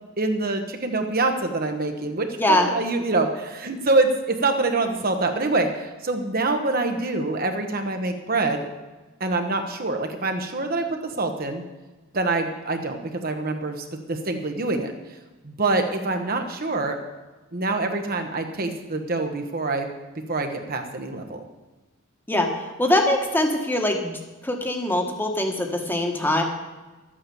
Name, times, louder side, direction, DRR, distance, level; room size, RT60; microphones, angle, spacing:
voice 1, 0.2-8.7 9.2-11.6 12.1-14.9 15.4-17.0 17.5-19.9 20.3-21.4, right 2 dB, 45° right, 5 dB, 1.3 m, -25 dB
voice 2, 22.8-24.1 24.4-26.4, left 1 dB, 10° left, 2 dB, 1.4 m, -22 dB
12.0 x 8.8 x 7.1 m, 1.2 s
head